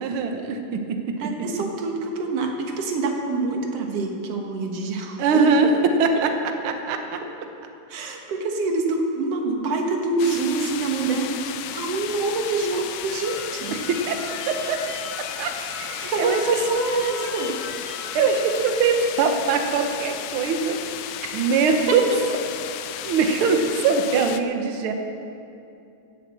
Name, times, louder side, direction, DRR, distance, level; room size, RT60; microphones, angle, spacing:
voice 1, 0.0-1.2 5.2-6.3 6.6-7.2 13.7-14.8 15.4-16.4 17.1-17.3 18.1-20.8 21.3-22.1 23.0-24.9, right 5 dB, 90° right, 5 dB, 1.1 m, -22 dB
voice 2, 1.2-5.4 7.9-13.7 16.1-17.6 21.9-22.0, right 3 dB, 55° right, 2 dB, 2.1 m, -26 dB
sound 1, 10.2-24.4, left 11 dB, 90° left, 1.6 m, -34 dB
sound 2, 13.1-18.8, left 3 dB, 60° left, 3.1 m, -39 dB
16.0 x 7.9 x 7.6 m, 2.6 s
omnidirectional pair, 3.8 m